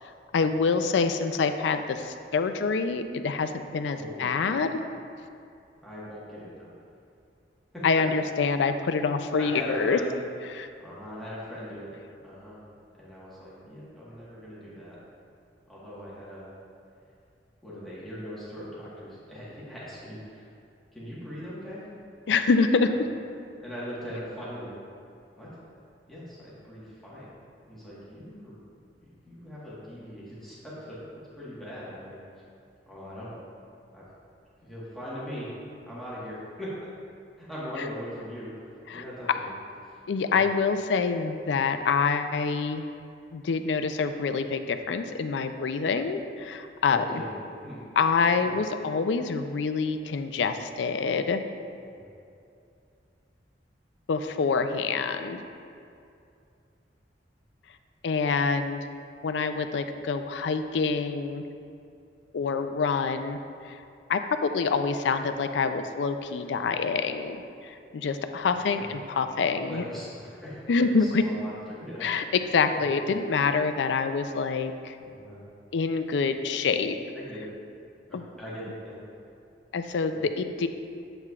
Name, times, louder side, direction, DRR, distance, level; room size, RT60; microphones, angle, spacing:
voice 1, 0.3-4.8 7.8-10.0 10.5-10.7 22.3-23.1 38.9-39.0 40.1-42.8 43.3-47.2 48.0-51.4 54.1-55.4 58.0-58.8 59.2-61.5 62.3-63.4 63.6-63.8 64.1-67.4 67.6-69.8 70.7-71.2 72.0-75.0 75.7-77.0 78.1-78.2 79.7-80.7, left 5 dB, 80° left, 8 dB, 0.4 m, -26 dB
voice 2, 3.9-4.4 5.8-6.7 7.7-8.0 9.4-10.1 10.8-11.9 12.2-12.6 13.0-15.0 15.7-16.5 17.6-20.5 20.9-21.9 22.8-23.0 23.6-24.7 25.4-25.5 26.1-27.3 27.7-28.6 29.2-32.2 32.9-33.4 33.9-34.0 34.6-35.5 35.8-36.7 37.4-39.5 40.3-40.4 46.8-47.8 48.3-48.6 52.0-52.1 69.7-72.1 72.7-72.8 75.0-75.4 77.1-77.5 78.1-79.0 80.1-80.2, equal, ahead, -10 dB, 1.4 m, -40 dB
7.9 x 7.5 x 2.4 m, 2.5 s
head